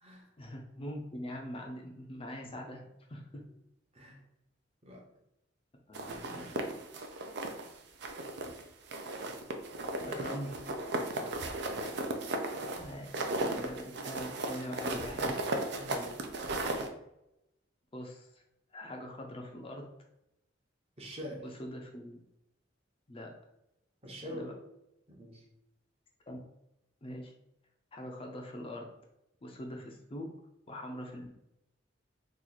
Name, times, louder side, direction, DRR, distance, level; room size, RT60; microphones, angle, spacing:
voice 1, 0.4-3.4 5.9-6.6 10.0-10.6 12.8-13.1 13.5-15.5 17.9-18.4 18.7-19.8 21.4-22.2 23.1-23.3 24.2-24.5 26.3-26.4 27.0-27.3 27.9-28.9 29.4-30.3 30.7-31.3, equal, 30° left, 1 dB, 0.5 m, -43 dB
sound 1, 5.9-7.7 8.0-8.6 8.9-16.9, right 2 dB, 60° right, 0.5 m, -36 dB
voice 2, 15.8-16.2 21.0-21.4 24.0-24.5 25.1-25.4, equal, 35° right, -1 dB, 0.9 m, -44 dB
3.0 x 2.4 x 3.9 m, 0.86 s
head